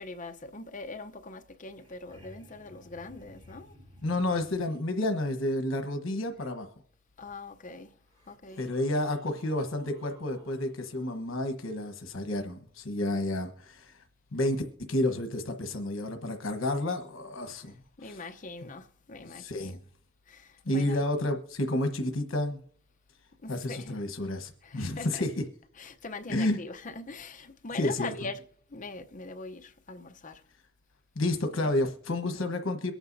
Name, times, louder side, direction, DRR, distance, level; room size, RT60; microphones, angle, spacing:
voice 1, 0.0-3.8 7.2-8.0 8.3-8.7 18.0-19.8 20.3-21.0 23.4-24.0 24.6-25.3 25.7-30.4 31.6-31.7 32.3-32.4, left 3 dB, 40° left, 0.8 m, -42 dB
sound 1, 1.7-4.8 7.3-7.4 8.0-11.1 13.7-13.8, equal, 30° right, 3.4 m, -56 dB
voice 2, 4.0-6.7 8.6-14.0 14.3-18.2 19.3-19.8 20.6-22.6 23.5-25.4 26.3-26.6 27.7-28.1 31.1-32.9, left 1 dB, 85° left, 1.2 m, -30 dB
23.0 x 8.9 x 2.7 m
head